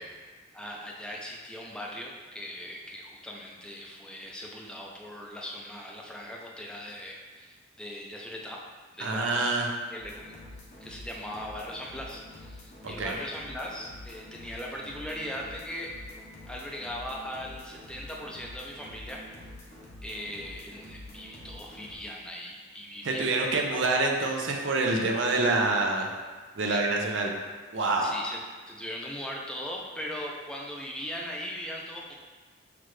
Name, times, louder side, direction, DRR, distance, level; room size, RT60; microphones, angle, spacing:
voice 1, 0.5-8.6 8.9-9.5 9.9-10.4 10.8-16.1 16.5-19.2 20.0-23.9 26.6-26.8 28.0-28.4 28.7-32.1, equal, 5° left, -2 dB, 0.5 m, -39 dB
voice 2, 9.0-9.7 13.0-13.1 23.0-26.1 26.6-27.3 27.7-28.1, right 3 dB, 75° right, 1 dB, 0.6 m, -26 dB
sound 1, 10.0-21.9, left 1 dB, 40° left, 0.8 m, -47 dB
5.8 x 2.4 x 3.2 m, 1.4 s
head